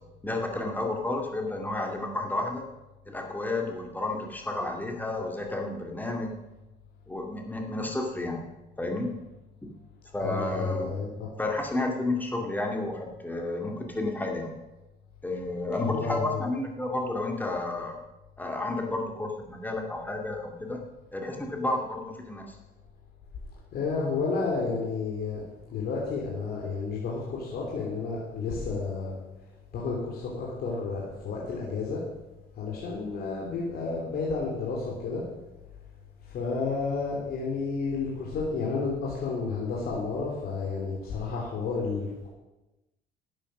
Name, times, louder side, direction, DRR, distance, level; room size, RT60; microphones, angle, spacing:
voice 1, 0.2-2.6 3.1-6.4 7.1-8.5 8.8-9.1 10.1-10.9 11.4-14.6 15.2-18.0 18.4-20.8 21.1-22.6, left 2 dB, 10° left, 1 dB, 2.4 m, -31 dB
voice 2, 10.2-11.3 15.8-16.5 23.7-25.4 25.7-29.1 29.7-32.0 32.6-35.2 36.2-42.3, left 4 dB, 65° left, -3 dB, 3.1 m, -31 dB
11.5 x 9.0 x 6.3 m, 1.0 s
cardioid pair, 110°, 17 cm